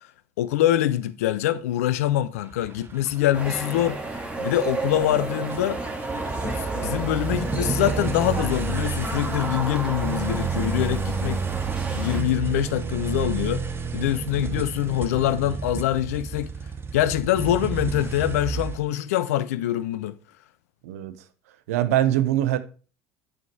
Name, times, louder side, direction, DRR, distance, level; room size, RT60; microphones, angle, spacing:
voice 1, 0.4-5.8 6.4-11.4 11.9-13.6 13.9-16.5 16.9-20.2, left 13 dB, 70° left, 0.5 m, -24 dB
sound 1, 2.4-3.5 4.2-4.3 5.5-18.8, right 5 dB, 30° right, 1.0 m, -30 dB
sound 2, 3.3-12.2, right 2 dB, 15° right, 2.0 m, -32 dB
voice 2, 20.8-21.1 21.7-22.6, right 12 dB, 70° right, 0.7 m, -22 dB
8.0 x 5.0 x 4.4 m
figure-of-eight pair, 65°, 8 cm